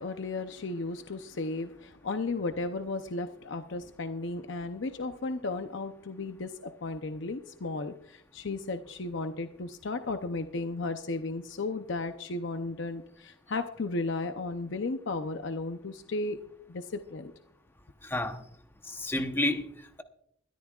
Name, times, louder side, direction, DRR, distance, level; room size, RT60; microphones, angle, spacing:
voice 1, 0.0-16.4 16.7-17.3, left 3 dB, 65° left, 8 dB, 0.7 m, -34 dB
voice 2, 18.0-18.4 18.8-20.0, left 1 dB, 10° left, 7 dB, 0.9 m, -31 dB
22.0 x 13.5 x 2.4 m, 0.73 s
head